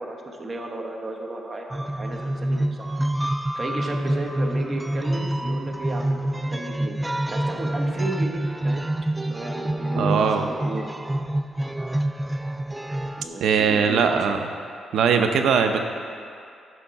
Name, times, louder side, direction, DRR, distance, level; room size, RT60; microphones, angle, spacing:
voice 1, 0.0-2.9 3.5-6.2 6.5-7.0 7.3-8.8 9.2-10.9 13.2-14.2, right 2 dB, 35° right, 2 dB, 1.0 m, -34 dB
sound 1, 1.7-13.2, right 1 dB, 10° right, 0.3 m, -27 dB
voice 2, 9.9-10.5 13.4-14.4 14.9-15.8, right 6 dB, 80° right, 6 dB, 0.7 m, -20 dB
11.0 x 6.2 x 4.7 m, 2.4 s
cardioid pair, 110°, 0 cm